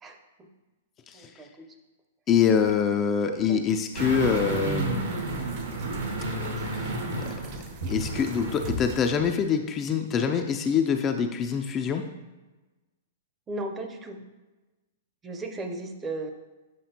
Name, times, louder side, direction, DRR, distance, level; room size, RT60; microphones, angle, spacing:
voice 1, 0.0-0.5 1.1-1.8 3.3-3.6 6.6-6.7 7.5-8.2 10.4-10.5 13.5-14.2 15.2-16.3, right 2 dB, 20° right, 5 dB, 0.6 m, -37 dB
voice 2, 1.1-1.4 2.3-5.1 6.7-6.9 7.9-12.1, left 7 dB, 25° left, 5 dB, 0.4 m, -25 dB
sound 1, 3.9-9.1, right 3 dB, 45° right, 0.8 m, -45 dB
sound 2, 4.0-8.9 9.2-9.3, right 2 dB, 80° right, 1.7 m, -31 dB
7.5 x 4.8 x 2.9 m, 1.2 s
hypercardioid pair, 140°, 0 cm